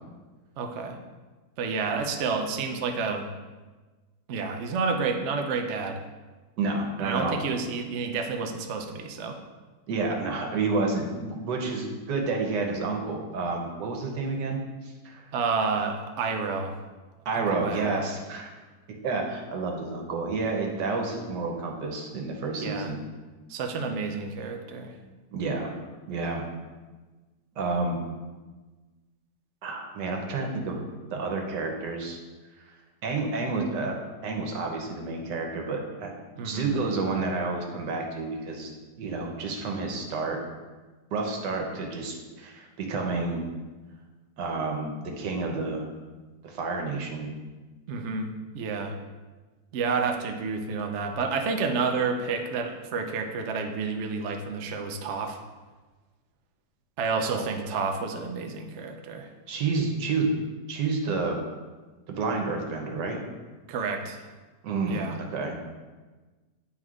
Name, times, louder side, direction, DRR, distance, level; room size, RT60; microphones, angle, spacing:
voice 1, 0.6-1.0 1.6-3.3 4.3-6.0 7.0-9.4 15.3-16.7 17.3-18.1 22.6-22.9 23.5-24.9 36.4-36.7 47.9-49.0 49.7-55.4 57.0-59.3 63.7-64.2 64.9-65.2, right 4 dB, 65° right, 4 dB, 0.7 m, -30 dB
voice 2, 6.6-7.4 9.9-15.2 15.8-15.9 17.2-18.5 19.0-23.0 25.3-25.7 26.1-26.5 27.6-28.0 29.6-30.8 31.1-32.2 33.0-33.9 34.2-38.7 39.0-40.4 41.1-43.5 44.4-45.8 46.4-47.3 59.5-60.3 60.7-61.4 62.1-63.2 64.6-65.6, right 3 dB, 85° right, 2 dB, 1.5 m, -30 dB
9.2 x 4.3 x 2.4 m, 1.3 s
omnidirectional pair, 1.8 m